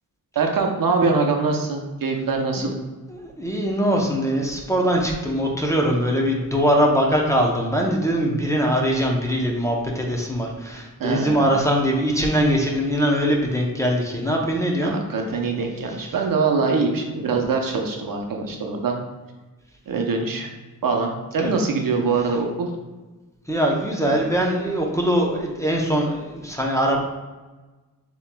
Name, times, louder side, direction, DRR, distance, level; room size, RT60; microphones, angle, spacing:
voice 1, 0.4-2.7 11.0-11.6 14.8-19.0 19.9-20.5 20.8-22.7, right 4 dB, 70° right, 2 dB, 0.7 m, -23 dB
voice 2, 3.1-14.9 21.4-21.5 23.5-27.0, equal, 10° left, -1 dB, 0.6 m, -22 dB
7.4 x 3.0 x 2.2 m, 1.2 s
wide cardioid pair, 150°, 35 cm